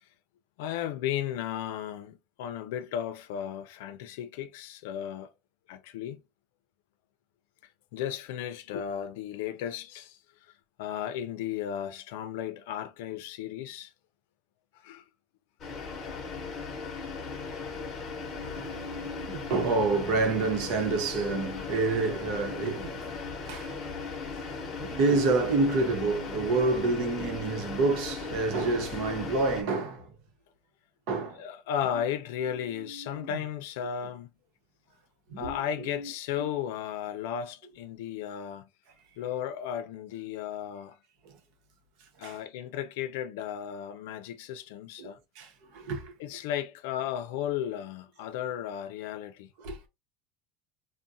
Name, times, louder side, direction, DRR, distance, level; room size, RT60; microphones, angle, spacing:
voice 1, 0.6-5.3 5.7-6.2 7.9-10.2 10.8-13.9 14.8-15.0 15.7-16.3 31.4-34.3 35.4-38.7 39.2-41.0 42.2-45.2 46.2-49.5, left 10 dB, 85° left, 0.5 m, -35 dB
sound 1, 15.6-29.6, left 4 dB, 30° left, 0.8 m, -38 dB
voice 2, 18.1-23.9 24.3-30.1 31.1-31.4 32.7-33.3 35.3-36.1 36.4-36.5 42.2-42.4 45.0-45.1 45.4-46.1 49.6-49.9, right 3 dB, 55° right, 0.8 m, -29 dB
3.6 x 2.1 x 2.7 m
cardioid pair, 165°, 0 cm